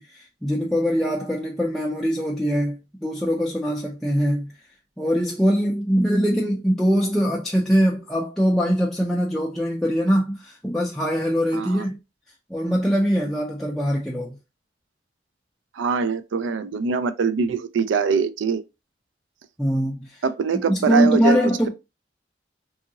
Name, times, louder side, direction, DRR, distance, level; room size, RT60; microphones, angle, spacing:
voice 1, 0.0-4.5 5.0-12.0 12.5-14.4 19.6-20.2 20.7-21.7, equal, ahead, 0.4 m, -22 dB
voice 2, 11.5-11.9 15.7-18.6 20.2-21.4, right 5 dB, 85° right, 0.4 m, -23 dB
2.8 x 2.7 x 2.6 m
head